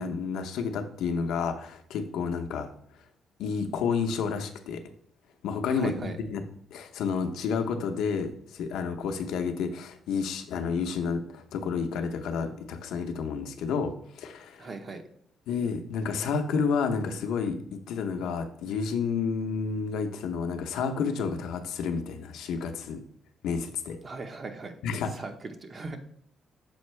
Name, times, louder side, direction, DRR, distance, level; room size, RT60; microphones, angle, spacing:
voice 1, 0.0-2.7 3.4-4.8 5.4-6.4 6.7-14.7 15.5-23.0 23.4-24.0 24.8-25.1, left 5 dB, 85° left, 6 dB, 0.7 m, -30 dB
voice 2, 5.7-6.2 14.6-15.0 24.0-24.8 25.1-26.0, right 3 dB, 40° right, 6 dB, 0.9 m, -38 dB
7.0 x 4.4 x 3.2 m, 0.65 s
cardioid pair, 90°, 0 cm